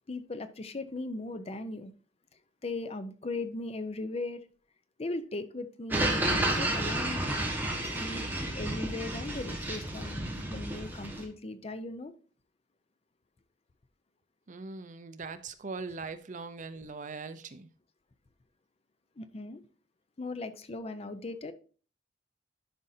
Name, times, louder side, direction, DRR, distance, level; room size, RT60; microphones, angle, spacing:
voice 1, 0.1-1.9 2.6-4.5 5.0-7.2 8.0-12.1 19.2-19.6 20.2-21.5, left 2 dB, 35° left, 0.6 m, -38 dB
sound 1, 5.9-11.3, right 1 dB, 10° right, 1.3 m, -31 dB
voice 2, 14.5-17.7, right 4 dB, 45° right, 0.6 m, -41 dB
11.0 x 5.3 x 2.7 m
head